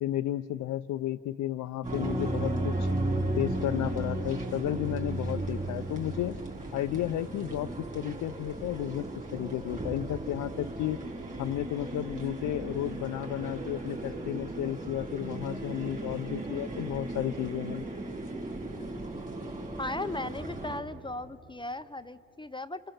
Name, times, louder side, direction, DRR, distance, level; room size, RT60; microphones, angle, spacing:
voice 1, 0.0-2.9 3.4-6.4 6.7-11.0 11.4-17.8, left 13 dB, 80° left, 7 dB, 0.6 m, -33 dB
sound 1, 1.8-20.8, right 2 dB, 25° right, 4.2 m, -35 dB
voice 2, 19.8-22.8, left 2 dB, 15° left, 12 dB, 0.5 m, -37 dB
28.5 x 28.5 x 7.2 m, 2.8 s
cardioid pair, 90°, 30 cm